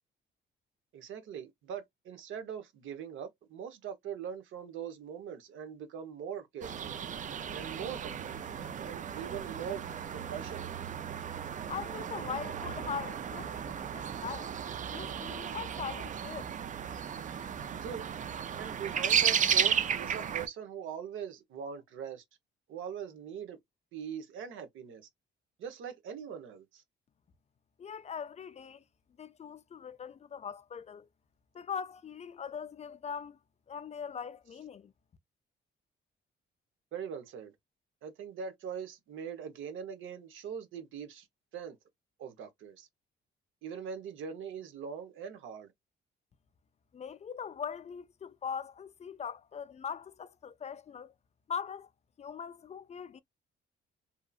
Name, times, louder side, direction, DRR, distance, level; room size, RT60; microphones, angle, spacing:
voice 1, 0.9-7.0 7.5-8.4 8.8-10.8 17.8-18.1 18.6-22.2 22.7-23.6 23.9-25.1 25.6-26.8 36.9-37.5 38.0-41.3 41.5-41.8 42.2-42.9 43.6-45.7, right 7 dB, 80° right, 0.9 m, -42 dB
sound 1, 6.6-20.5, right 8 dB, 40° right, 0.4 m, -34 dB
voice 2, 11.7-14.5 14.9-16.4 27.8-28.8 29.2-31.1 31.5-33.4 33.7-34.9 46.9-51.1 51.5-51.9 52.2-53.2, left 7 dB, 35° left, 0.4 m, -41 dB
2.8 x 2.6 x 2.3 m
cardioid pair, 90°, 20 cm